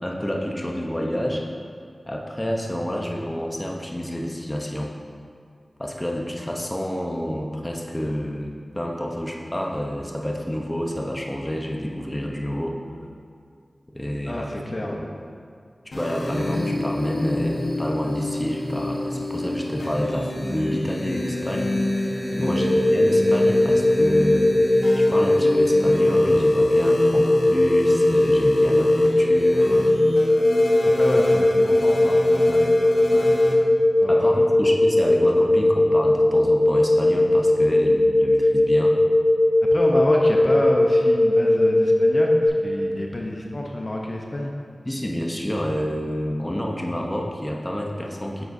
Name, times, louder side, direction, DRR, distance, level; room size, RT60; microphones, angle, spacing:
voice 1, 0.0-1.4 2.1-4.9 5.8-12.8 13.9-15.0 15.9-24.8 25.1-29.9 34.1-39.0 44.8-48.4, equal, 20° left, -1 dB, 1.0 m, -29 dB
voice 2, 14.2-15.0 22.3-22.5 30.9-33.4 34.0-34.5 39.7-44.5, left 1 dB, 45° left, -1 dB, 0.9 m, -28 dB
sound 1, 15.9-33.5, left 1 dB, 75° left, 1.3 m, -28 dB
sound 2, 22.5-42.5, left 1 dB, 85° right, 1.9 m, -19 dB
9.6 x 7.5 x 2.8 m, 2.2 s
cardioid pair, 45°, 0 cm